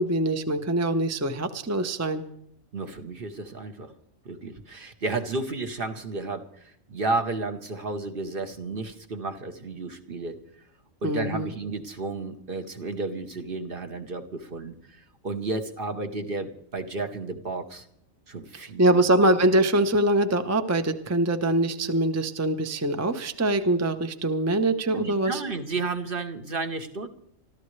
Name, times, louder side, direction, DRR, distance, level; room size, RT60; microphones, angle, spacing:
voice 1, 0.0-2.2 11.0-11.5 18.8-25.4, right 1 dB, 15° right, 8 dB, 0.7 m, -23 dB
voice 2, 2.7-3.9 4.2-10.4 11.0-17.9 18.3-19.0 24.9-27.1, right 3 dB, 45° right, 6 dB, 1.2 m, -32 dB
25.5 x 13.5 x 3.2 m, 0.71 s
omnidirectional pair, 1.4 m